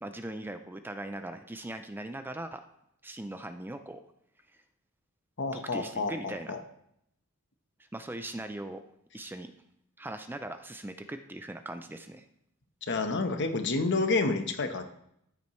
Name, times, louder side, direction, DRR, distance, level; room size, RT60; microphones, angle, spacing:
voice 1, 0.0-2.6 3.0-4.0 5.5-6.6 7.9-8.8 9.1-9.5 10.0-12.2, right 1 dB, 10° right, 8 dB, 0.4 m, -40 dB
voice 2, 5.4-6.6 12.9-14.8, left 3 dB, 55° left, 6 dB, 1.1 m, -29 dB
13.5 x 8.5 x 3.2 m, 0.75 s
head